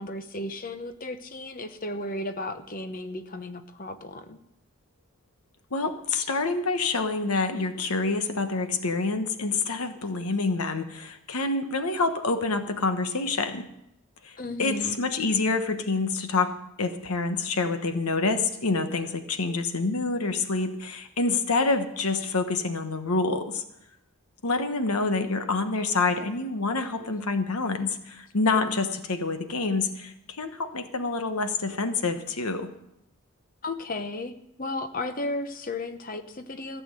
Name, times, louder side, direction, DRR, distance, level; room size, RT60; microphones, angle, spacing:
voice 1, 0.0-4.4 14.4-15.0 33.6-34.3 34.6-36.8, left 2 dB, 40° left, 8 dB, 0.9 m, -34 dB
voice 2, 5.7-13.7 14.2-23.6 24.4-32.7, left 3 dB, 90° left, 8 dB, 1.2 m, -27 dB
14.5 x 6.3 x 9.2 m, 0.81 s
head